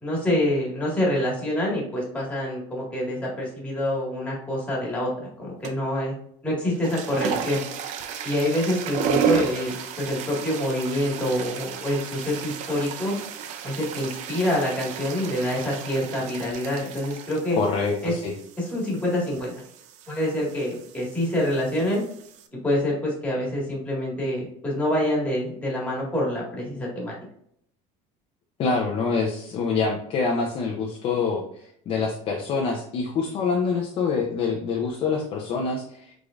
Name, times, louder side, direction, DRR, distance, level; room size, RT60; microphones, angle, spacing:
voice 1, 0.0-6.1 6.4-7.6 8.2-13.1 13.6-17.6 18.0-18.1 18.6-19.5 20.1-22.0 22.5-27.1, left 1 dB, 10° left, -4 dB, 1.7 m, -26 dB
sound 1, 5.6-6.0 6.6-22.5, right 7 dB, 50° right, 0.6 m, -33 dB
voice 2, 17.6-18.3 28.6-36.1, left 4 dB, 35° left, 0 dB, 0.6 m, -26 dB
5.0 x 3.7 x 2.4 m, 0.68 s
cardioid pair, 155°, 15 cm